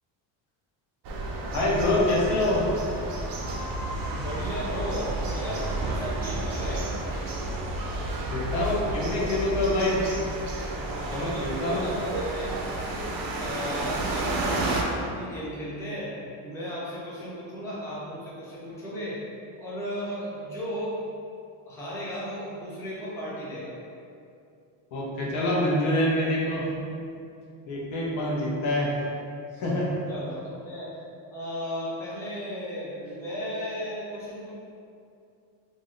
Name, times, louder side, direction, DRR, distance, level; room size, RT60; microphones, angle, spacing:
sound 1, 1.0-14.8, right 2 dB, 50° right, 0.5 m, -31 dB
voice 1, 1.5-2.7 8.3-10.0 11.1-11.9 24.9-26.7 27.6-28.9 29.6-29.9, left 1 dB, 85° left, -4 dB, 0.9 m, -25 dB
voice 2, 4.1-6.8 11.1-12.5 13.4-16.2 16.4-19.2 19.6-21.0 21.7-23.8 30.1-30.9 31.3-34.5, equal, 5° left, -8 dB, 0.4 m, -35 dB
2.6 x 2.1 x 3.7 m, 2.5 s
cardioid pair, 145°, 47 cm